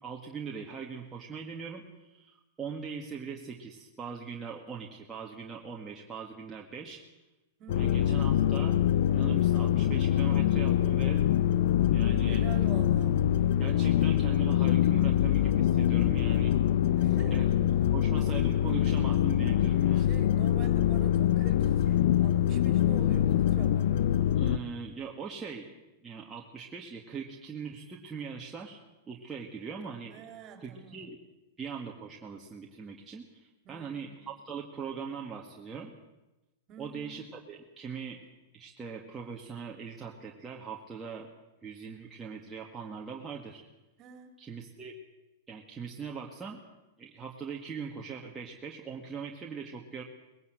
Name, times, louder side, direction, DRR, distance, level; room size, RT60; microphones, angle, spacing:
voice 1, 0.0-7.0 7.7-8.8 9.1-11.3 11.9-12.4 13.6-16.5 17.3-17.4 17.7-20.1 24.4-25.7 26.0-28.8 29.1-30.1 30.6-31.2 31.6-35.9 36.8-38.2 38.5-41.3 41.6-43.6 44.4-45.0 45.5-46.6 47.0-50.0, right 6 dB, 15° right, -1 dB, 2.1 m, -41 dB
voice 2, 7.6-8.1 12.2-13.3 17.0-17.4 20.0-23.9 30.1-31.1 33.6-34.2 36.7-37.1 44.0-44.3, right 7 dB, 35° right, 5 dB, 4.0 m, -47 dB
sound 1, 7.7-24.6, left 11 dB, 65° left, 0.8 m, -25 dB
20.5 x 16.5 x 8.0 m, 1.0 s
hypercardioid pair, 110°, 0 cm